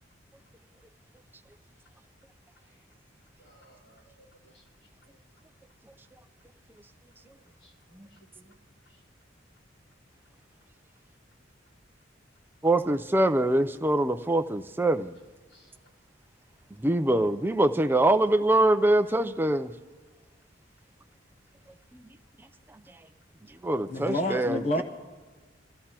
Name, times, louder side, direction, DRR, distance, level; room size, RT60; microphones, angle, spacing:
voice 1, 3.4-4.1 4.4-5.2 7.4-8.6 8.9-9.0 15.5-15.9, equal, 85° left, 4.7 m, -59 dB
voice 2, 12.6-15.1 16.8-19.7 23.6-24.8, right 1 dB, 10° right, 0.4 m, -24 dB
voice 3, 23.9-24.8, left 1 dB, 35° left, 0.9 m, -28 dB
26.5 x 14.5 x 2.9 m
head